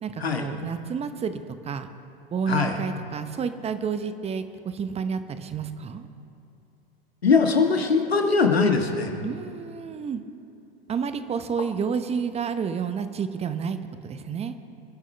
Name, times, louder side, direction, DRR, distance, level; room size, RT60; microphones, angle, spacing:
voice 1, 0.0-1.9 2.3-6.1 9.2-10.2 10.9-14.5, right 6 dB, 20° right, 10 dB, 0.9 m, -30 dB
voice 2, 7.2-9.1, left 4 dB, 85° left, 3 dB, 1.7 m, -21 dB
26.5 x 11.0 x 3.4 m, 2.7 s
figure-of-eight pair, 95°, 30 cm